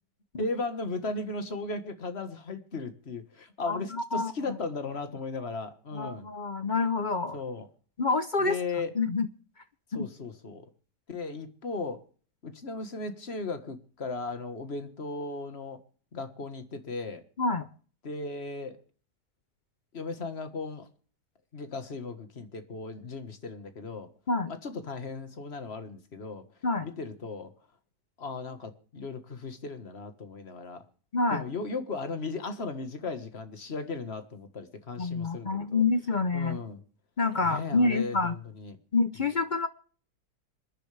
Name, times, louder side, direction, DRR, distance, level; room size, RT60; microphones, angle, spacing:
voice 1, 0.4-6.3 7.3-7.7 8.4-8.9 9.9-10.7 11.1-12.0 12.4-15.8 16.1-17.2 18.0-18.8 19.9-20.9 21.5-24.1 24.5-26.4 26.8-27.5 28.2-30.8 31.3-35.8 36.3-36.8 37.4-38.8, left 3 dB, 40° left, 8 dB, 1.7 m, -36 dB
voice 2, 3.7-4.3 5.9-7.4 8.0-8.6 9.0-9.3 9.9-10.1 17.4-17.7 24.3-24.5 26.6-26.9 31.1-31.4 35.0-36.6 37.2-38.3 38.9-39.7, left 3 dB, 55° left, 11 dB, 0.5 m, -27 dB
26.5 x 10.5 x 3.4 m, 0.43 s
omnidirectional pair, 1.8 m